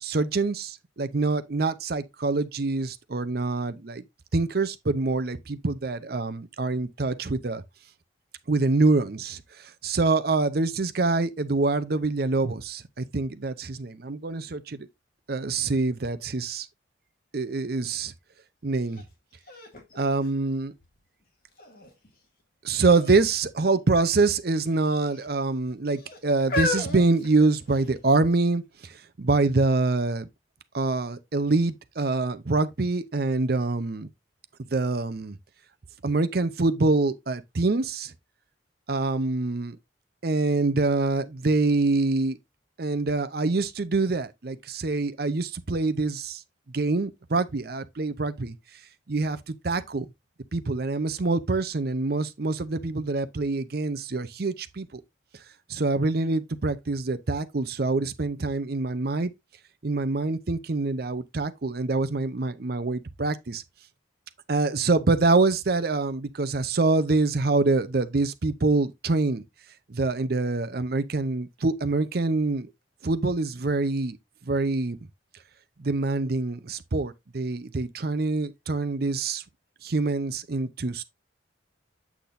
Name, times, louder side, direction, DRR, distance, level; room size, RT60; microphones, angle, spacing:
voice 1, 0.0-4.0 4.3-7.6 8.5-9.4 9.8-14.8 15.3-16.7 17.3-18.1 18.6-19.0 20.0-20.7 22.6-28.6 29.2-30.3 30.7-34.1 34.7-35.4 36.0-38.1 38.9-39.8 40.2-42.4 42.8-46.4 46.7-48.5 49.1-50.1 50.5-55.0 55.7-59.3 59.8-63.6 64.5-69.4 69.9-72.7 73.0-74.2 74.5-75.0 75.8-79.4 79.8-81.0, right 3 dB, 55° right, 0.6 m, -25 dB
sound 1, 18.9-19.0 19.5-21.0 21.6-22.1 22.9-23.3 23.6-23.7 24.6-25.2 25.9-28.0 28.7-28.8, left 3 dB, 50° left, 2.2 m, -33 dB
8.5 x 6.0 x 2.6 m
head